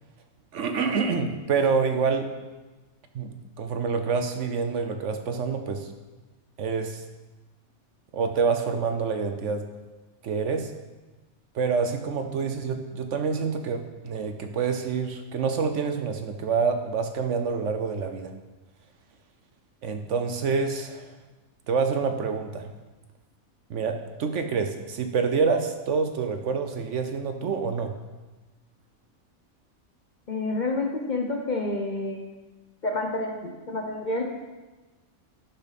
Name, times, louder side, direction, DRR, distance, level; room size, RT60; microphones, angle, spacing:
voice 1, 0.5-2.3 3.1-5.9 6.6-7.0 8.1-9.6 10.2-10.7 11.5-18.3 19.8-21.1 21.7-22.7 23.7-27.9, right 5 dB, 60° right, 7 dB, 1.0 m, -27 dB
voice 2, 30.3-32.2 32.8-34.2, left 2 dB, 40° left, 2 dB, 0.8 m, -29 dB
11.0 x 7.0 x 4.1 m, 1.2 s
omnidirectional pair, 1.5 m